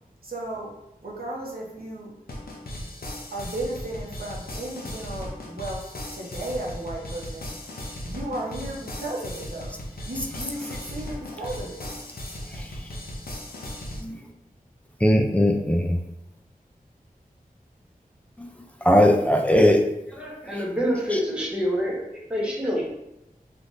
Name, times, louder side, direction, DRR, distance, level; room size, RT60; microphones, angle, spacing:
voice 1, 0.2-0.7 1.0-2.1 3.3-7.5 8.1-9.7 10.1-11.8, right 1 dB, 80° right, -3 dB, 0.9 m, -34 dB
sound 1, 2.3-14.0, left 1 dB, 80° left, 0.6 m, -37 dB
voice 2, 15.0-16.0 18.4-18.5 18.8-19.8, equal, 10° left, 3 dB, 0.4 m, -19 dB
voice 3, 20.1-22.8, equal, 5° right, -4 dB, 1.0 m, -27 dB
3.4 x 2.5 x 2.5 m, 0.90 s
wide cardioid pair, 70°, 15 cm